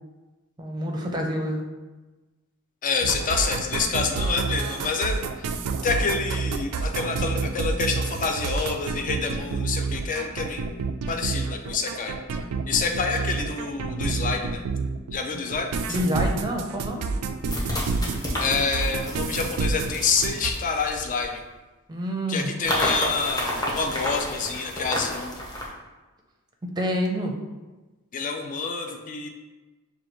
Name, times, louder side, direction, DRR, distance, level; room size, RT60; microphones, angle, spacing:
voice 1, 0.6-1.6 15.3-15.4 15.9-17.1 21.9-22.5 26.8-27.3, equal, 20° right, 1 dB, 0.6 m, -27 dB
voice 2, 2.8-5.5 5.8-12.2 12.7-14.6 15.1-16.0 18.4-21.4 22.3-25.3 28.1-29.3, left 5 dB, 35° left, 4 dB, 0.4 m, -27 dB
sound 1, 3.0-15.2 15.5-20.5, right 4 dB, 80° right, 0.3 m, -28 dB
sound 2, 16.1-16.2 17.4-21.3 22.6-25.7, equal, 15° left, 0.8 m, -31 dB
6.4 x 2.3 x 3.0 m, 1.2 s
head